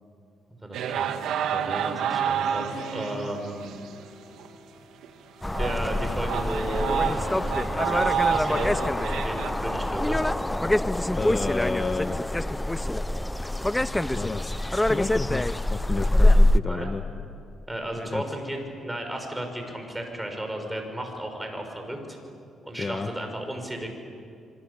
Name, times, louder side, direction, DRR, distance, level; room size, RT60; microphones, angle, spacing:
voice 1, 0.6-1.1 1.4-3.6 5.6-8.7 9.2-10.2 16.7-16.9 17.7-18.6 18.8-22.2 22.6-23.9, right 1 dB, 10° right, 4 dB, 6.2 m, -34 dB
sound 1, 0.7-3.9 4.4-4.5 5.0-5.1 5.5-9.5, right 8 dB, 80° right, 1.6 m, -29 dB
sound 2, 2.3-9.0, left 3 dB, 60° left, 2.9 m, -48 dB
sound 3, 5.4-16.6, left 1 dB, 10° left, 0.6 m, -24 dB
voice 2, 11.2-12.2 13.9-17.0 18.0-18.2 22.8-23.1, left 3 dB, 30° left, 7 dB, 1.3 m, -31 dB
26.5 x 24.5 x 8.5 m, 2.4 s
cardioid pair, 90°, 0 cm